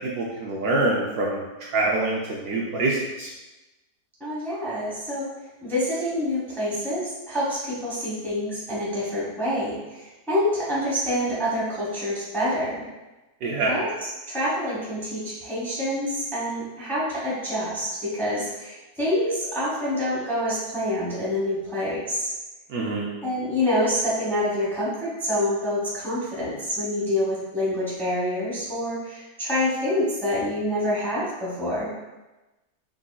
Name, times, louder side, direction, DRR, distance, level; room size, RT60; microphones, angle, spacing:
voice 1, 0.2-1.4 1.7-3.3 13.4-13.7 22.7-23.1, right 2 dB, 70° right, -3 dB, 1.0 m, -25 dB
voice 2, 4.2-5.3 5.6-12.8 13.7-22.3 23.2-31.9, left 1 dB, ahead, -8 dB, 1.0 m, -27 dB
4.8 x 3.6 x 2.3 m, 1.1 s
omnidirectional pair, 1.8 m